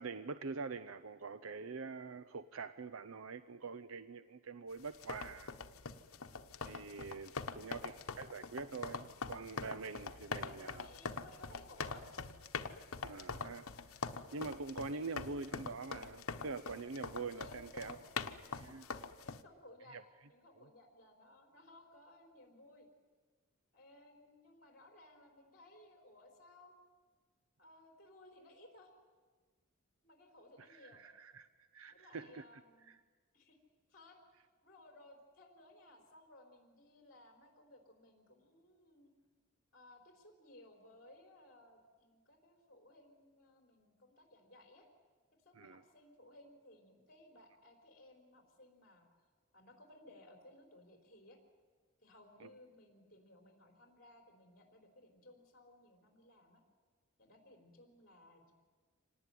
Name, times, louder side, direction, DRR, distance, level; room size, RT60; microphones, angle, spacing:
voice 1, 0.0-5.5 6.6-10.9 13.0-13.7 14.3-18.0 18.6-18.8 19.9-20.0 30.6-31.5 31.7-32.4 32.9-33.0 45.6-45.8 52.4-52.5, right 4 dB, 70° right, 0.7 m, -45 dB
sound 1, 4.9-19.4, left 4 dB, 80° left, 1.1 m, -44 dB
voice 2, 10.3-12.1 17.4-18.0 18.5-18.6 19.2-22.9 23.7-26.7 27.6-28.9 30.0-31.0 31.9-33.0 33.3-33.6 33.9-34.2 34.6-39.1 39.7-44.9 45.4-49.1 49.5-51.4 52.0-56.6 57.2-58.5, left 1 dB, 45° left, 4.2 m, -60 dB
26.0 x 19.0 x 9.3 m
head